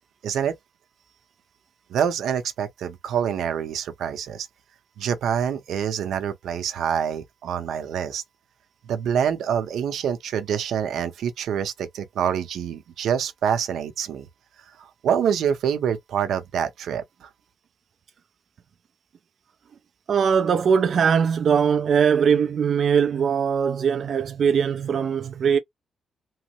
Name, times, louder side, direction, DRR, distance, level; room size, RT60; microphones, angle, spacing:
voice 1, 0.2-0.5 1.9-4.5 5.0-8.2 8.8-14.3 14.8-17.3, right 8 dB, 85° right, 0.7 m, -26 dB
voice 2, 20.1-25.6, right 7 dB, 55° right, 0.4 m, -21 dB
3.1 x 2.0 x 3.0 m
cardioid pair, 130°, 0 cm